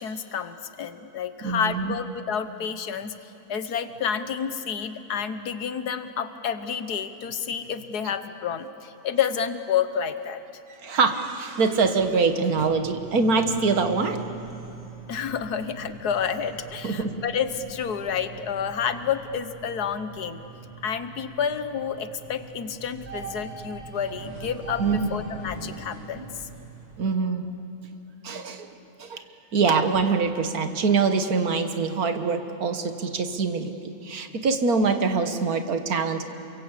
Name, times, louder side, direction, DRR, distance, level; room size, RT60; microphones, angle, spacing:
voice 1, 0.0-3.1 3.5-10.4 15.1-20.4 20.8-26.5, left 7 dB, 90° left, 11 dB, 1.7 m, -29 dB
voice 2, 1.4-1.9 8.1-8.2 10.8-14.3 16.8-17.1 24.8-25.1 27.0-27.5 28.2-28.7 29.0-29.2 29.5-36.2, right 4 dB, 70° right, 8 dB, 1.9 m, -24 dB
sound 1, 12.6-27.0, right 4 dB, 85° right, 6.4 m, -42 dB
28.0 x 23.0 x 8.3 m, 2.9 s
omnidirectional pair, 1.6 m